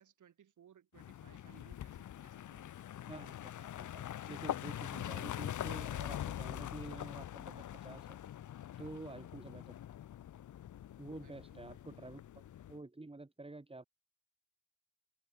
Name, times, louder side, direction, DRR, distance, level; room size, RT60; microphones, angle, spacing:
voice 1, 0.0-2.7 8.8-9.1 11.2-11.7, right 9 dB, 75° right, 6.8 m, -64 dB
sound 1, 0.9-12.8, left 11 dB, 75° left, 1.1 m, -44 dB
voice 2, 3.1-8.2 8.8-9.8 11.0-12.4 12.7-13.8, right 2 dB, 20° right, 4.0 m, -49 dB
cardioid pair, 75°, 31 cm